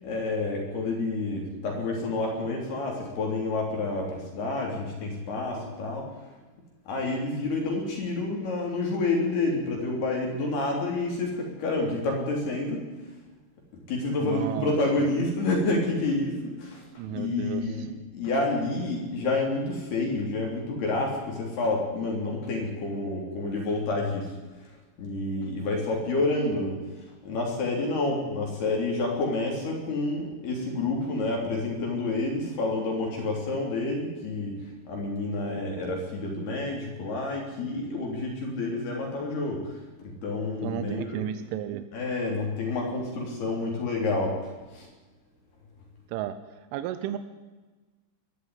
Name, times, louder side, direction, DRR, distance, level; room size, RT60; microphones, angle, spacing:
voice 1, 0.0-6.3 6.9-12.9 13.9-24.3 24.6-24.7 25.0-26.8 27.2-41.2 41.9-44.9, left 2 dB, 60° left, 0 dB, 5.1 m, -29 dB
voice 2, 14.2-14.8 17.0-17.6 40.6-41.8 46.1-46.3 46.7-47.2, right 11 dB, 90° right, 11 dB, 3.4 m, -32 dB
22.0 x 13.0 x 9.7 m, 1.2 s
omnidirectional pair, 5.5 m